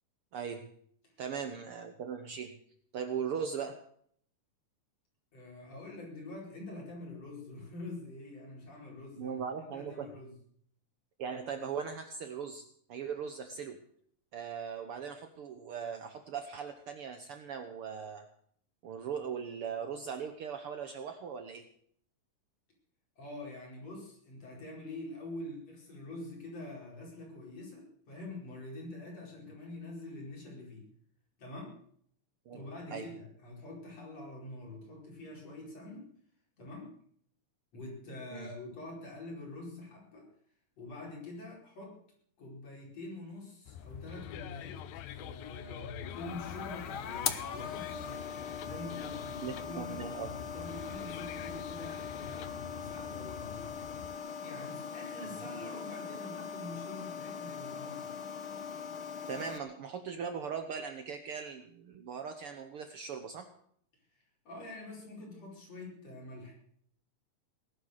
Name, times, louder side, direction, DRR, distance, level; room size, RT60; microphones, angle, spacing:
voice 1, 0.3-0.7 1.2-2.6 2.9-3.8 9.2-10.1 11.2-13.8 14.3-18.2 18.8-21.6 32.5-32.6 32.9-33.1 38.3-38.5 49.4-50.3 55.2-55.4 59.3-63.5, right 6 dB, 80° right, 7 dB, 1.2 m, -39 dB
voice 2, 5.3-10.4 23.2-30.9 31.4-31.8 32.5-36.1 36.6-36.9 37.7-40.3 40.8-41.9 42.4-44.8 45.1-58.2 64.1-66.5, left 2 dB, 45° left, -2 dB, 5.9 m, -46 dB
sound 1, 43.7-54.2, left 11 dB, 90° left, 2.7 m, -46 dB
sound 2, 46.0-59.6, left 7 dB, 70° left, 1.2 m, -41 dB
18.5 x 11.5 x 6.6 m, 0.63 s
omnidirectional pair, 4.0 m